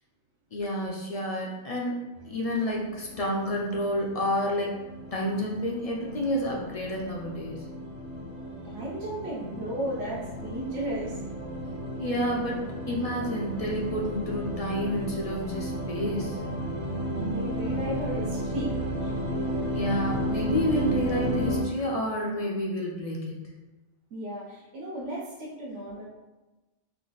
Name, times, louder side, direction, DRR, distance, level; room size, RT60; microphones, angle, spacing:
voice 1, 0.5-2.0 2.2-4.8 5.1-7.7 12.0-16.4 19.7-23.4, equal, 60° left, -2 dB, 0.4 m, -30 dB
sound 1, 2.2-21.6, equal, 60° right, 1.3 m, -33 dB
voice 2, 8.6-11.3 17.1-18.7 19.0-19.1 24.1-26.0, right 1 dB, 80° right, -5 dB, 1.0 m, -35 dB
3.4 x 2.3 x 3.8 m, 1.1 s
omnidirectional pair, 1.2 m